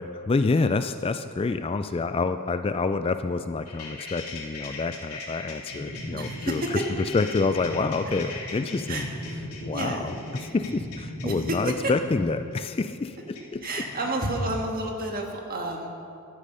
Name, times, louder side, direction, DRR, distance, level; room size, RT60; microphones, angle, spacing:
voice 1, 0.0-6.8 7.1-9.1 9.6-10.1 10.5-13.2 13.5-13.6, left 3 dB, 25° left, 10 dB, 0.3 m, -27 dB
sound 1, 3.7-14.2, left 1 dB, 80° left, 2.6 m, -38 dB
voice 2, 6.1-6.8 8.9-9.1 9.7-10.1 11.2-11.9 13.6-15.9, right 1 dB, 40° right, 1 dB, 1.8 m, -30 dB
13.5 x 12.0 x 5.5 m, 2.6 s
head